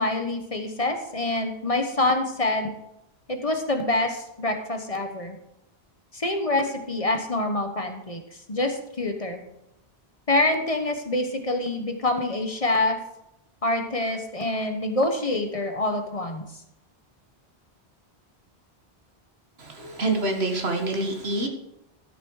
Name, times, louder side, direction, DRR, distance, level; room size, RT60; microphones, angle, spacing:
voice 1, 0.0-2.7 3.3-5.4 6.1-8.2 8.5-9.4 10.3-13.0 13.6-16.4, left 2 dB, 35° left, 5 dB, 1.1 m, -26 dB
voice 2, 19.6-21.5, right 2 dB, 75° right, 4 dB, 1.9 m, -26 dB
12.5 x 6.9 x 4.7 m, 0.84 s
omnidirectional pair, 1.1 m